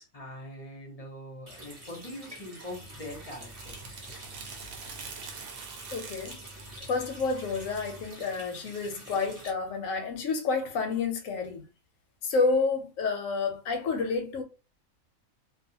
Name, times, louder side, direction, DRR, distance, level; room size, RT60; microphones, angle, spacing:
voice 1, 0.0-4.0, left 1 dB, 35° left, 0.7 m, -43 dB
Water tap faucet, 1.5-9.5, right 1 dB, 30° right, 0.9 m, -48 dB
sound 1, 2.7-8.1, right 4 dB, 80° right, 1.0 m, -45 dB
voice 2, 5.9-6.4 6.9-11.7 12.2-14.4, left 4 dB, 70° left, 0.9 m, -29 dB
2.4 x 2.3 x 2.7 m
omnidirectional pair, 1.5 m